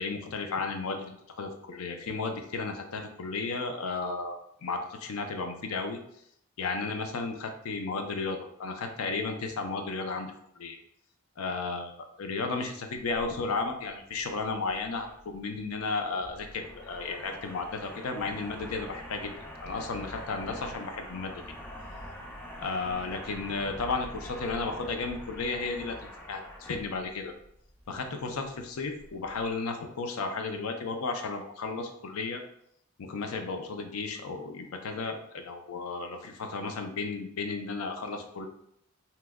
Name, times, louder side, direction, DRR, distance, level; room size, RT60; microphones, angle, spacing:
voice 1, 0.0-6.0 6.6-10.8 11.4-19.3 19.6-21.4 22.6-26.0 26.3-27.3 27.9-32.4 33.0-38.5, left 4 dB, 75° left, 5 dB, 0.5 m, -34 dB
sound 1, 13.0-29.5, equal, 10° left, 0.3 m, -45 dB
2.9 x 2.1 x 3.5 m, 0.72 s
head